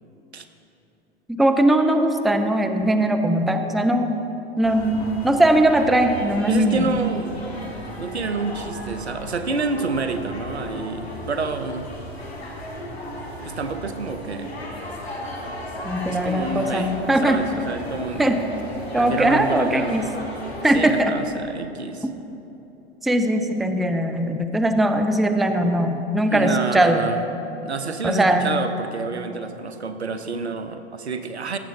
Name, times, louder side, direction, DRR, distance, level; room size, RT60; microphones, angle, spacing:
voice 1, 1.3-4.1 4.6-6.9 15.8-17.4 18.2-18.4 18.9-20.1 20.6-21.1 23.0-27.0 28.0-28.6, right 1 dB, ahead, 6 dB, 0.4 m, -20 dB
sound 1, 4.6-21.0, left 1 dB, 75° left, 2.1 m, -35 dB
voice 2, 6.5-7.4 8.0-11.9 13.4-14.5 16.1-16.9 17.2-18.3 19.0-20.1 20.7-22.1 26.3-27.2 27.6-31.6, right 4 dB, 90° right, 9 dB, 0.6 m, -28 dB
17.0 x 7.3 x 2.8 m, 3.0 s
figure-of-eight pair, 85°, 32 cm